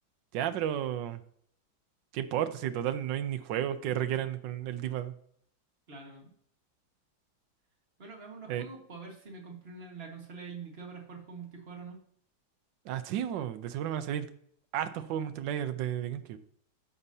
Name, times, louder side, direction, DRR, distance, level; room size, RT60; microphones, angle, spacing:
voice 1, 0.3-1.2 2.1-5.1 8.5-8.7 12.9-14.3 14.7-16.4, right 10 dB, 85° right, 10 dB, 1.4 m, -32 dB
voice 2, 5.9-6.3 8.0-12.0, right 4 dB, 35° right, 1 dB, 1.7 m, -45 dB
11.0 x 7.1 x 2.7 m, 0.63 s
omnidirectional pair, 1.9 m